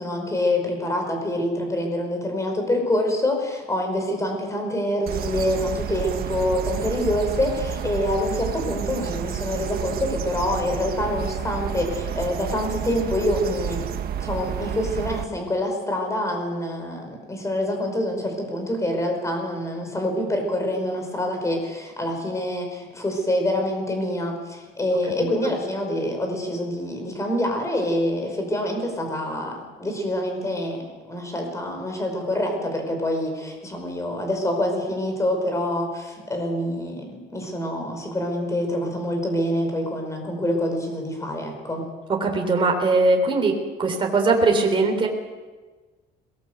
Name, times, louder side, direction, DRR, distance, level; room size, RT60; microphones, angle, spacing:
voice 1, 0.0-41.9, left 1 dB, 15° left, 4 dB, 5.2 m, -26 dB
sound 1, 5.1-15.2, right 9 dB, 50° right, 1.4 m, -30 dB
voice 2, 42.2-43.5 43.8-45.1, right 3 dB, 25° right, 2 dB, 3.6 m, -20 dB
22.0 x 19.5 x 8.0 m, 1.3 s
cardioid pair, 145°, 19 cm